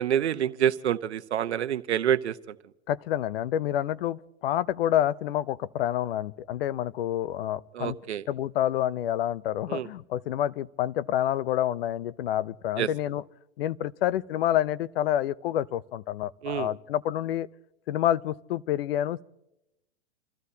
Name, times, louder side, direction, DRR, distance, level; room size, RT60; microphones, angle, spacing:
voice 1, 0.0-2.5 7.7-8.2 9.7-9.9 12.8-12.9 16.4-16.7, right 10 dB, 80° right, 0.9 m, -27 dB
voice 2, 2.9-8.0 8.3-13.2 13.6-17.5 17.9-19.2, left 12 dB, 60° left, 0.6 m, -28 dB
28.5 x 14.5 x 2.8 m
hypercardioid pair, 125°, 33 cm